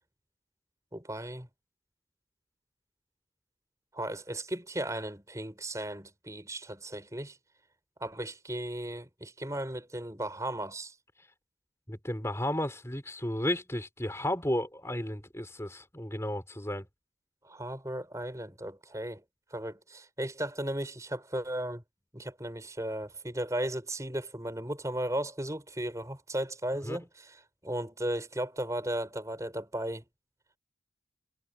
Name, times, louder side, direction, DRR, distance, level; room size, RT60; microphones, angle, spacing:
voice 1, 0.9-1.5 3.9-7.4 8.0-10.9 17.4-19.2 19.5-21.8 22.1-30.0, right 1 dB, 15° right, 5.4 m, -36 dB
voice 2, 11.9-16.9 26.8-27.0, left 1 dB, 15° left, 4.8 m, -33 dB
head